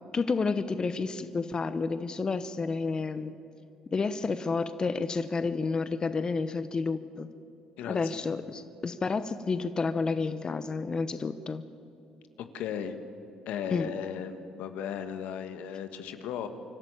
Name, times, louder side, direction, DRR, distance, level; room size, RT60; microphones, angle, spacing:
voice 1, 0.1-3.3 3.9-7.3 7.8-11.6 13.7-13.9, left 4 dB, 35° left, 12 dB, 0.9 m, -30 dB
voice 2, 7.8-8.2 12.5-13.0 13.4-16.5, left 8 dB, 75° left, 9 dB, 1.5 m, -36 dB
26.5 x 12.0 x 8.9 m, 2.9 s
supercardioid pair, 75°, 2 cm